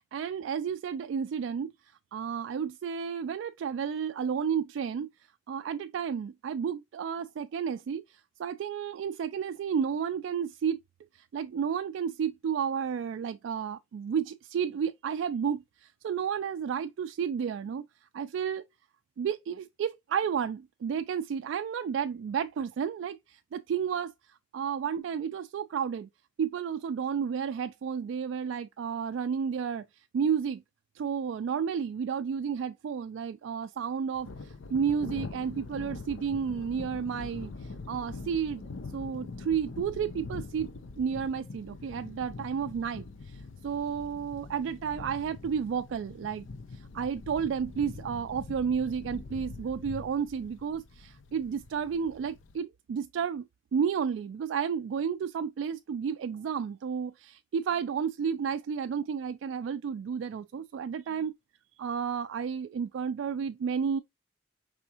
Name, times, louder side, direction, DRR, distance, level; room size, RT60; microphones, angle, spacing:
voice 1, 0.1-1.7 2.1-5.1 5.5-10.8 11.1-17.8 18.1-18.6 19.2-24.1 24.5-26.1 26.4-29.8 30.1-30.6 30.9-38.6 38.9-40.7 41.0-46.5 46.7-53.5 53.7-61.3 61.8-64.0, right 7 dB, 75° right, 0.3 m, -32 dB
Thunder, 34.2-52.6, left 3 dB, 85° left, 0.5 m, -44 dB
4.9 x 3.5 x 2.8 m
head